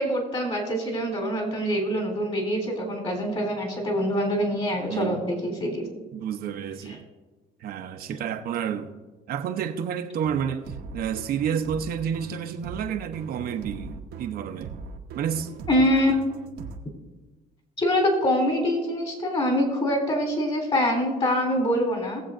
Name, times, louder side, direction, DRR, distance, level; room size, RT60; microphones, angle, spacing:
voice 1, 0.0-5.9 15.7-16.1 17.8-22.2, equal, 35° left, 3.5 m, -24 dB
voice 2, 6.1-7.0 7.6-8.9 9.3-14.8 15.1-15.5 15.9-16.0, right 8 dB, 65° right, 0.8 m, -30 dB
sound 1, 10.2-16.8, right 5 dB, 85° right, 1.1 m, -40 dB
20.5 x 7.6 x 2.5 m
cardioid pair, 110°, 17 cm